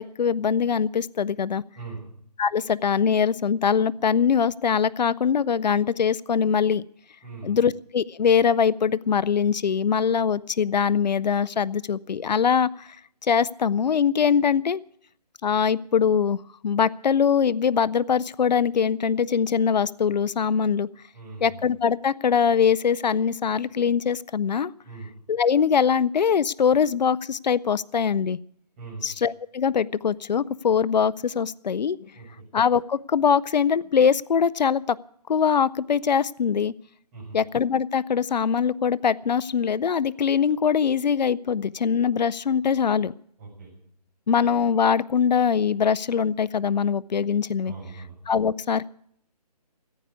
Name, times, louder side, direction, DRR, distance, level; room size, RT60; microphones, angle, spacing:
voice 1, 0.0-1.6 2.4-6.8 7.4-13.0 13.2-14.8 15.4-20.9 21.4-24.7 25.3-28.4 29.0-32.0 32.5-35.0 35.3-36.7 37.3-43.1 44.3-47.7 48.3-48.9, left 7 dB, 80° left, 19 dB, 0.5 m, -22 dB
voice 2, 7.2-7.6 21.1-21.6 24.8-25.1 28.8-29.1 32.1-32.5 37.1-37.4 43.4-43.7 47.6-48.1, right 4 dB, 20° right, -3 dB, 6.5 m, -40 dB
14.5 x 9.6 x 8.2 m, 0.66 s
hypercardioid pair, 165°, 21 cm